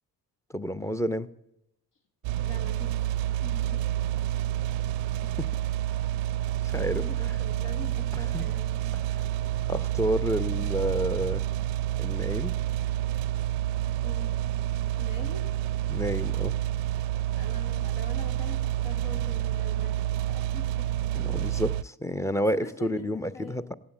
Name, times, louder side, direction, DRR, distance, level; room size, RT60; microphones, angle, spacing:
voice 1, 0.5-1.3 5.4-5.5 6.7-7.0 8.3-8.4 9.7-11.4 12.0-12.5 15.9-16.5 21.1-23.7, equal, 5° left, 16 dB, 0.6 m, -29 dB
sound 1, 2.2-21.8, right 13 dB, 65° right, 0.5 m, -29 dB
voice 2, 2.4-3.1 3.4-3.9 6.8-8.8 14.0-14.4 15.0-15.5 17.4-20.9 22.5-23.7, left 4 dB, 60° left, 7 dB, 1.9 m, -44 dB
16.5 x 8.2 x 7.7 m, 0.84 s
hypercardioid pair, 50°, 48 cm